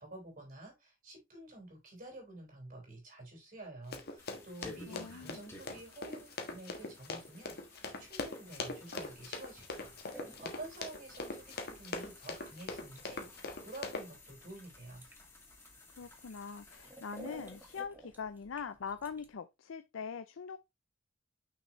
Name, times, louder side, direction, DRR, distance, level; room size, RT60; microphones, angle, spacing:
voice 1, 0.0-15.1, right 2 dB, 45° right, 3.9 m, -50 dB
Run, 3.9-14.1, left 3 dB, 55° left, 1.4 m, -42 dB
sound 1, 4.2-17.8, left 2 dB, 15° left, 2.2 m, -56 dB
voice 2, 4.9-5.5 16.0-20.6, left 6 dB, 85° left, 0.5 m, -42 dB
sound 2, 9.4-19.3, right 1 dB, 10° right, 1.1 m, -56 dB
6.1 x 5.9 x 3.0 m
head